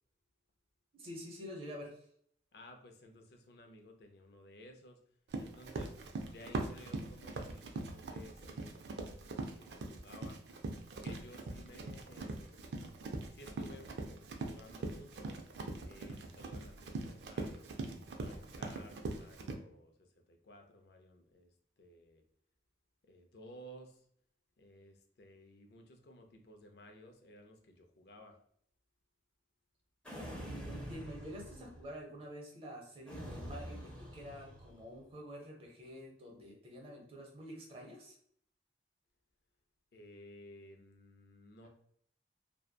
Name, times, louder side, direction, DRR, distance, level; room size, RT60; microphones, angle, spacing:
voice 1, 0.9-1.9 30.4-38.2, equal, 30° right, -1 dB, 0.6 m, -48 dB
voice 2, 2.5-5.0 5.4-6.0 6.3-10.4 10.7-12.7 13.3-15.4 15.9-17.7 18.1-21.5 21.8-22.2 23.0-24.1 24.6-28.4 39.9-41.7, left 1 dB, 60° left, 4 dB, 0.4 m, -56 dB
Run, 5.3-19.5, right 2 dB, 70° right, 0.3 m, -42 dB
sound 1, 30.0-31.9 33.1-34.9, equal, 5° left, 0.5 m, -46 dB
2.6 x 2.2 x 2.2 m, 0.65 s
head